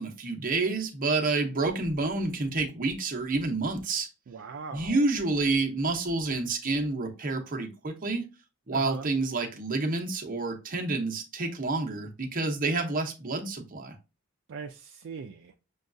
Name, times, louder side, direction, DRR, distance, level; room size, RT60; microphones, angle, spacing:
voice 1, 0.0-4.1 4.7-8.2 8.7-14.0, right 3 dB, 40° right, 0.7 m, -29 dB
voice 2, 4.3-5.0 8.7-9.1 14.5-15.5, right 5 dB, 60° right, 0.3 m, -40 dB
6.3 x 2.3 x 2.5 m
head